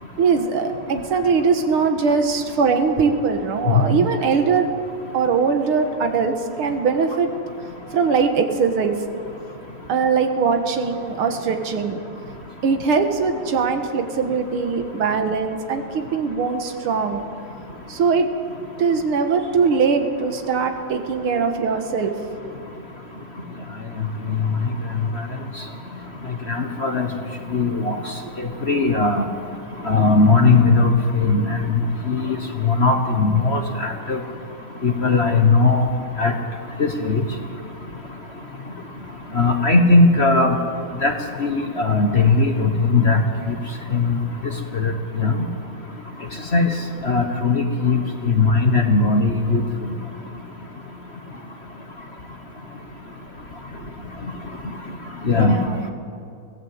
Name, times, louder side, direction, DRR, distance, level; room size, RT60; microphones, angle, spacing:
voice 1, 0.2-4.7 5.1-7.3 7.9-9.0 9.9-12.0 12.6-17.2 17.9-18.3 18.8-22.1 55.3-55.8, right 5 dB, 85° right, 6 dB, 2.3 m, -21 dB
voice 2, 26.5-27.1 27.5-28.0 28.4-29.2 29.8-31.6 32.1-32.4 32.6-34.2 34.8-35.8 36.2-36.4 36.8-37.2 39.3-40.6 41.0-41.1 41.4-43.2 43.5-43.6 43.9-44.2 44.7-44.9 45.2-45.3 46.5-46.7 47.0-48.0 48.2-49.6 55.2-55.5, left 3 dB, 35° left, 5 dB, 1.3 m, -18 dB
23.5 x 16.5 x 7.9 m, 2.5 s
omnidirectional pair, 2.3 m